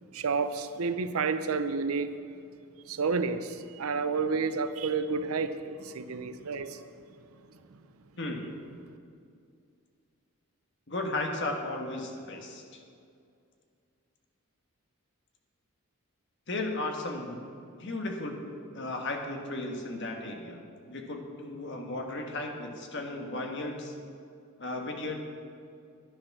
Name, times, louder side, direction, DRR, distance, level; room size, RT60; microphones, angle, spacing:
voice 1, 0.1-2.1 2.9-6.8, right 4 dB, 80° right, 11 dB, 0.6 m, -30 dB
voice 2, 8.2-8.5 10.9-12.8 16.5-17.4 17.8-18.4 18.7-20.6 20.9-23.9 24.6-25.2, left 2 dB, 55° left, 2 dB, 1.5 m, -35 dB
10.5 x 9.8 x 6.0 m, 2.4 s
head